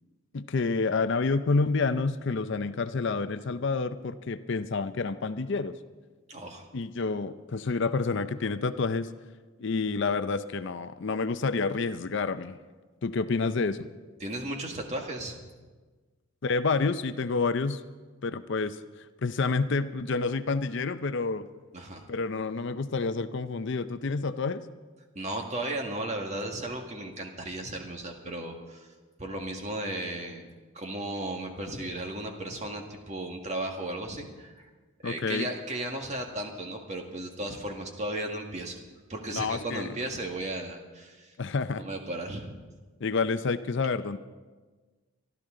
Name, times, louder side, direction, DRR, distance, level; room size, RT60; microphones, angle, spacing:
voice 1, 0.3-5.7 6.7-9.1 9.6-12.6 13.0-13.8 16.4-17.8 18.2-18.8 19.2-21.5 22.1-24.6 35.0-35.5 39.3-39.9 41.4-41.8 43.0-44.2, left 4 dB, 55° left, 12 dB, 0.5 m, -28 dB
voice 2, 6.3-6.7 14.2-15.4 21.7-22.0 25.2-28.9 29.2-30.5 30.7-34.7 35.0-38.7 39.1-41.3 41.8-42.5, right 1 dB, 30° right, 2 dB, 1.8 m, -35 dB
25.0 x 12.5 x 3.8 m, 1.3 s
head